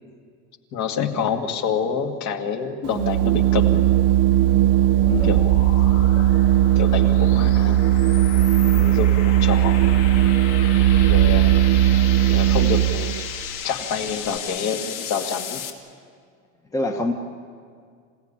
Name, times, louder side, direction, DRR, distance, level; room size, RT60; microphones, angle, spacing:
voice 1, 0.7-3.8 5.2-5.4 6.8-7.8 8.7-9.8 11.1-11.5 12.3-13.1 13.6-15.6, left 6 dB, 45° left, 4 dB, 2.2 m, -27 dB
Organ, 2.9-13.2, right 13 dB, 35° right, 0.6 m, -17 dB
sound 1, 4.3-15.7, left 8 dB, 70° left, 2.5 m, -35 dB
voice 2, 5.1-5.4 6.2-6.3 16.7-17.1, left 2 dB, 10° left, 3 dB, 1.2 m, -25 dB
28.0 x 16.5 x 10.0 m, 2.1 s
supercardioid pair, 155°, 37 cm